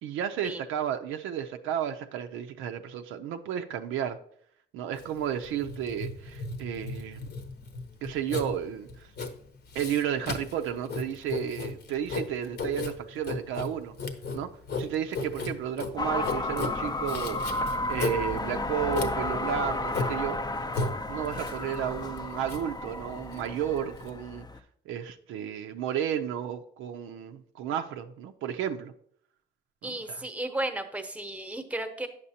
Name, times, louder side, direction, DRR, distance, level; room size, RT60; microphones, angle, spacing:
voice 1, 0.0-4.2 4.7-7.2 8.0-9.1 9.7-13.9 14.3-14.5 14.8-17.4 17.9-20.4 21.1-24.5 24.9-28.9 29.8-30.2, right 9 dB, 90° right, 6 dB, 0.5 m, -32 dB
Writing, 4.9-24.1, left 3 dB, 55° left, 0.9 m, -36 dB
sound 1, 16.0-24.6, left 2 dB, 20° left, 0.5 m, -32 dB
voice 2, 29.8-32.1, right 1 dB, 5° right, 6 dB, 0.9 m, -34 dB
8.6 x 6.6 x 2.8 m, 0.65 s
cardioid pair, 90°, 20 cm